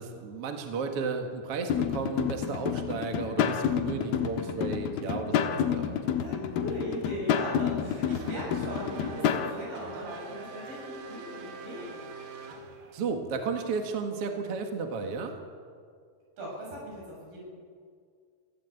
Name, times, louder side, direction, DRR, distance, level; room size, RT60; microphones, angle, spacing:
voice 1, 0.0-6.0 12.9-15.4, right 4 dB, 50° right, 4 dB, 2.0 m, -33 dB
sound 1, 1.7-9.5, left 8 dB, 80° left, 3.0 m, -29 dB
voice 2, 6.2-12.0 16.4-17.4, equal, 70° right, -3 dB, 9.6 m, -38 dB
Race car auto racing / Accelerating revving vroom, 7.6-13.1, right 3 dB, 85° right, 4.0 m, -44 dB
24.0 x 16.0 x 8.2 m, 2.1 s
omnidirectional pair, 4.4 m